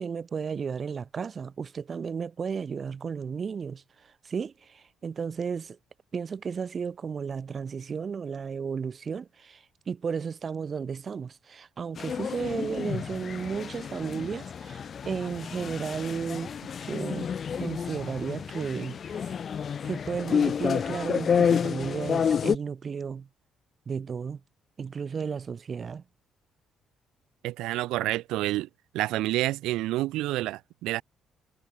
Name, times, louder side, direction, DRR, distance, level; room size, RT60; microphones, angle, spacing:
voice 1, 0.0-3.8 4.2-5.8 6.1-16.5 16.8-19.4 19.8-23.3 23.9-24.4 24.8-26.0, right 6 dB, 40° right, 7.6 m, -34 dB
sound 1, 12.0-22.5, left 7 dB, 45° left, 0.7 m, -30 dB
voice 2, 27.4-28.7 28.9-31.0, right 17 dB, 85° right, 2.2 m, -28 dB
cardioid pair, 90°, 0 cm